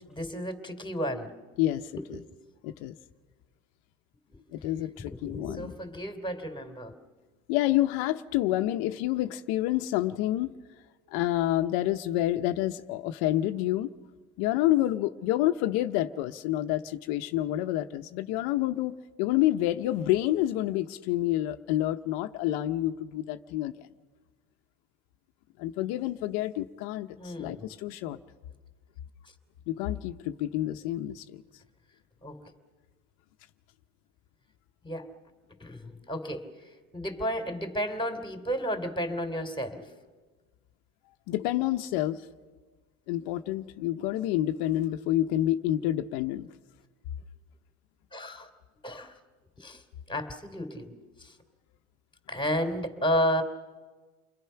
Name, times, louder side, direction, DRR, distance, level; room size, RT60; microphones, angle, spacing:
voice 1, 0.1-1.3 2.0-2.1 4.6-4.7 5.0-6.9 27.2-27.7 32.2-32.4 34.8-35.1 35.6-36.5 36.9-39.8 48.1-48.5 48.8-49.1 49.6-49.8 50.1-50.9 51.2-51.3 52.3-53.4, equal, 15° left, 6 dB, 3.2 m, -32 dB
voice 2, 1.6-2.2 2.6-2.9 4.5-5.7 7.5-10.5 11.1-13.9 14.4-23.9 25.6-28.2 29.7-31.4 41.3-42.2 43.1-46.5, left 14 dB, 80° left, 7 dB, 0.9 m, -28 dB
30.0 x 22.0 x 5.8 m, 1.4 s
supercardioid pair, 95°, 37 cm